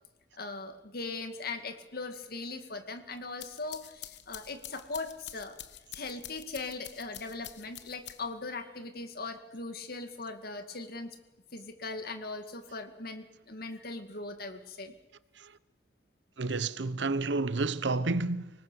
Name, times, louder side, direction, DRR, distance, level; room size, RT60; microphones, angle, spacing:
voice 1, 0.4-5.6 5.9-11.1 11.5-14.9, left 3 dB, 55° left, 2.1 m, -39 dB
sound 1, 3.2-8.5, left 12 dB, 75° left, 1.2 m, -47 dB
voice 2, 16.4-18.5, right 3 dB, 80° right, 0.9 m, -30 dB
25.0 x 19.5 x 6.9 m
head